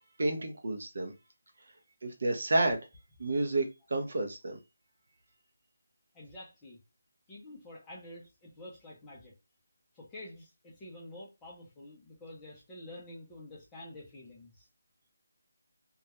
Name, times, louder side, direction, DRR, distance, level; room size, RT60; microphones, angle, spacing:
voice 1, 0.2-1.1 2.0-2.8 3.2-4.6, right 2 dB, 45° right, 0.6 m, -30 dB
voice 2, 6.1-6.8 7.3-9.3 9.9-14.7, left 1 dB, 10° left, 0.5 m, -48 dB
2.3 x 2.1 x 2.8 m
figure-of-eight pair, 175°, 0 cm